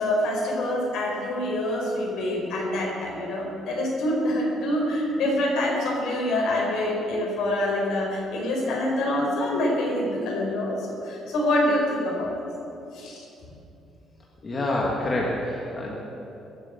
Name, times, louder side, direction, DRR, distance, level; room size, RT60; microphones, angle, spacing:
voice 1, 0.0-12.3 12.9-13.2, left 1 dB, 65° left, -2 dB, 4.5 m, -26 dB
voice 2, 14.4-15.9, left 1 dB, 20° left, -3 dB, 1.5 m, -27 dB
22.5 x 7.8 x 7.0 m, 2.8 s
cardioid pair, 175°, 0 cm